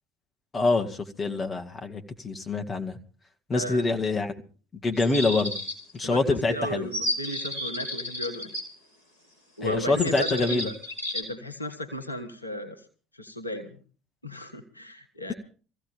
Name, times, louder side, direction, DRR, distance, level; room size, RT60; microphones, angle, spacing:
voice 1, 0.5-3.0 3.5-4.4 4.8-5.5 5.9-6.9 9.6-10.7, left 3 dB, 25° left, 4 dB, 2.0 m, -26 dB
voice 2, 3.5-3.8 6.0-8.5 9.6-10.7 11.1-12.8 13.1-13.8 14.2-15.3, equal, 85° left, 6 dB, 1.4 m, -34 dB
sound 1, 4.9-6.0 6.9-8.6 10.0-11.2, left 1 dB, 85° right, 3.8 m, -32 dB
24.5 x 15.5 x 3.5 m, 0.40 s
figure-of-eight pair, 60°, 0 cm